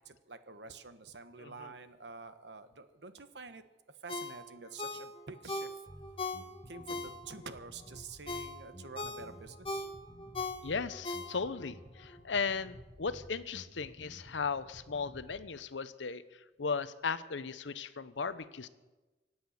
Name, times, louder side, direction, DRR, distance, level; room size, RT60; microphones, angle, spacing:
voice 1, 0.0-3.6 4.0-5.7 6.7-9.9, right 4 dB, 70° right, 11 dB, 1.1 m, -48 dB
voice 2, 1.4-1.7 10.6-18.7, left 5 dB, 90° left, 14 dB, 0.8 m, -37 dB
Ringtone, 4.1-7.5 7.9-11.7 12.1-12.2, left 2 dB, 30° left, 1.4 m, -40 dB
Bass guitar, 5.9-15.4, equal, 5° right, 5.5 m, -53 dB
25.0 x 8.9 x 6.5 m, 1.2 s
head